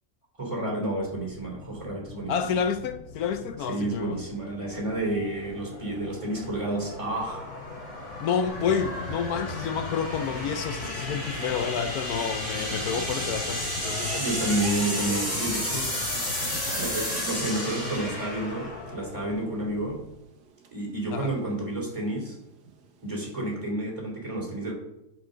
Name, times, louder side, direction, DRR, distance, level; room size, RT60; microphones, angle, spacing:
voice 1, 0.4-2.6 3.6-7.5 14.2-16.2 16.8-20.0 20.7-22.4 23.0-24.7, right 1 dB, 20° right, 2.9 m, -30 dB
sound 1, 1.3-20.2, left 1 dB, 45° left, 4.1 m, -34 dB
voice 2, 2.3-4.2 8.2-14.2 21.1-21.3, left 7 dB, 70° left, 1.0 m, -29 dB
sound 2, 4.9-23.5, right 5 dB, 80° right, 1.6 m, -46 dB
sound 3, 8.5-16.9, left 2 dB, 5° left, 2.1 m, -40 dB
8.9 x 5.1 x 6.5 m
omnidirectional pair, 1.8 m